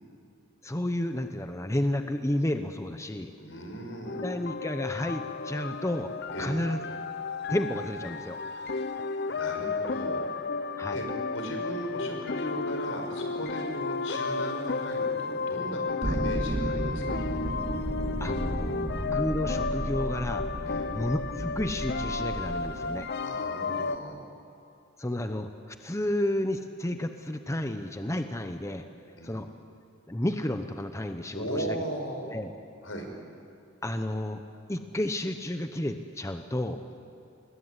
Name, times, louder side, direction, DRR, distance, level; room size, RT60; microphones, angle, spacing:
voice 1, 0.6-3.3 4.2-6.8 7.5-8.4 10.8-11.0 16.1-16.2 18.2-23.1 25.0-28.8 29.2-29.5 30.1-31.8 32.2-32.5 33.8-34.4 34.7-36.8, left 1 dB, 15° left, 7 dB, 0.9 m, -31 dB
voice 2, 3.4-4.2 6.3-6.7 8.5-8.9 9.3-10.2 10.9-11.1 11.3-17.4 20.6-20.9 23.2-24.2 29.2-29.4 31.3-32.3 32.8-33.1 36.9-37.0, equal, 80° left, 3 dB, 5.5 m, -37 dB
sound 1, 4.0-24.0, left 4 dB, 55° left, 0.8 m, -33 dB
sound 2, 16.0-23.1, right 1 dB, 25° right, 0.8 m, -34 dB
25.5 x 21.0 x 9.8 m, 2.6 s
head